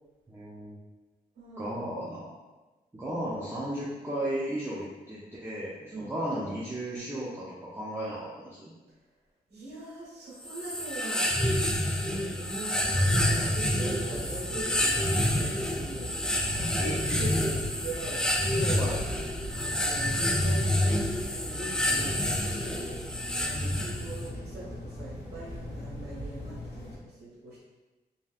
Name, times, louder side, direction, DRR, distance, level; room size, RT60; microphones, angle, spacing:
voice 1, 0.3-0.8 1.6-2.3 2.9-8.7 16.8-17.2 18.8-19.0, right 1 dB, 15° right, -8 dB, 0.7 m, -35 dB
voice 2, 1.3-1.8 3.0-3.3 5.9-6.1 9.5-11.3 12.0-16.1 16.5-18.9 19.5-27.6, right 1 dB, 85° right, -7 dB, 1.3 m, -41 dB
sound 1, 10.4-24.3, left 1 dB, 5° left, 0.3 m, -28 dB
sound 2, 12.8-27.0, left 1 dB, 80° left, 0.6 m, -41 dB
3.0 x 2.7 x 2.4 m, 1.2 s
cardioid pair, 60°, 17 cm